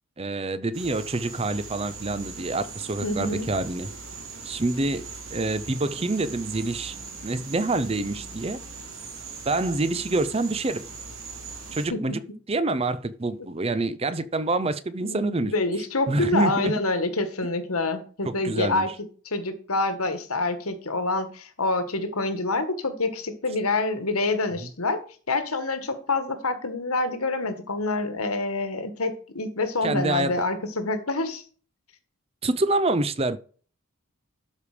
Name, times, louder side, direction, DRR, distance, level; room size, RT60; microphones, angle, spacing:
voice 1, 0.2-3.9 4.4-7.0 7.2-8.6 9.5-10.8 11.7-12.2 12.5-15.5 16.1-16.8 18.3-18.9 24.6-24.7 29.8-30.4 32.4-33.4, right 2 dB, 25° right, 0.5 m, -26 dB
sound 1, 0.7-11.9, right 4 dB, 70° right, 2.7 m, -40 dB
voice 2, 3.0-3.5 11.9-12.0 15.0-18.9 19.2-25.0 25.3-31.4, left 2 dB, 85° left, 1.5 m, -27 dB
12.0 x 5.0 x 5.0 m
head